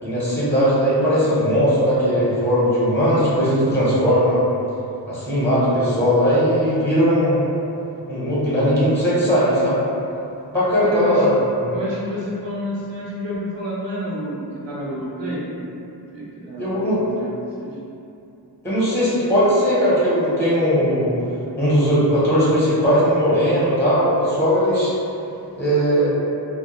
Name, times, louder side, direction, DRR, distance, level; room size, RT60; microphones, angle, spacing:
voice 1, 0.0-4.4 5.1-7.4 8.1-9.8 10.5-11.7 16.6-17.0 18.6-21.1 21.6-24.9 25.6-26.1, equal, 5° left, -9 dB, 0.7 m, -18 dB
voice 2, 10.8-11.3 11.7-15.4 16.1-17.7, equal, 80° right, -6 dB, 0.7 m, -29 dB
2.2 x 2.1 x 2.8 m, 2.8 s
wide cardioid pair, 45°, 43 cm